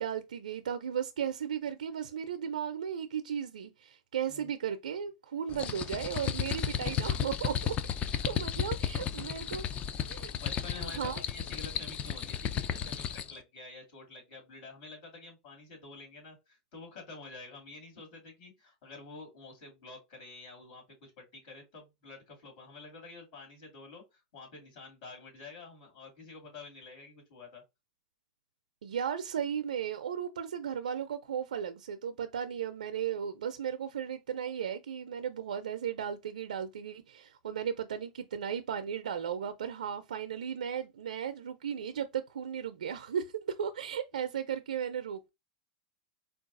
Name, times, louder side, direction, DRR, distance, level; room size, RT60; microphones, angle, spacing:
voice 1, 0.0-7.8 8.3-9.6 10.1-10.3 10.8-11.2 28.8-45.3, right 8 dB, 90° right, 0.4 m, -35 dB
sound 1, 5.5-13.4, left 9 dB, 30° left, 0.4 m, -34 dB
voice 2, 8.7-9.2 10.3-27.6, left 3 dB, 60° left, 2.2 m, -49 dB
4.6 x 2.3 x 2.5 m
hypercardioid pair, 115°, 4 cm